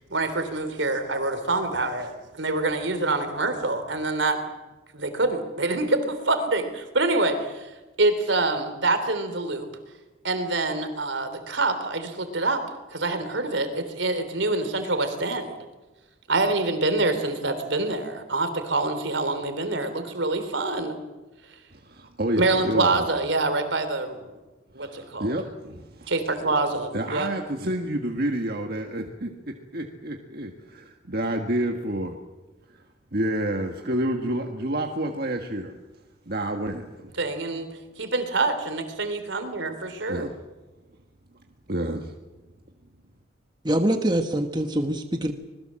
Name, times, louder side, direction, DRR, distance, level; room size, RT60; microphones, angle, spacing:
voice 1, 0.1-4.6 4.9-7.7 8.0-9.7 10.2-12.6 12.9-15.5 16.3-21.0 22.4-24.3 24.7-25.3 26.1-27.3 37.2-37.7 38.0-40.3, right 2 dB, 75° right, 9 dB, 3.5 m, -26 dB
voice 2, 21.7-23.1 24.8-26.1 26.9-32.2 32.7-32.8 33.1-35.8 36.3-37.1 40.1-40.3 41.7-42.1, right 1 dB, 50° right, 3 dB, 1.7 m, -29 dB
voice 3, 43.6-45.3, right 1 dB, 20° right, 6 dB, 1.3 m, -24 dB
25.5 x 21.5 x 7.6 m, 1.2 s
head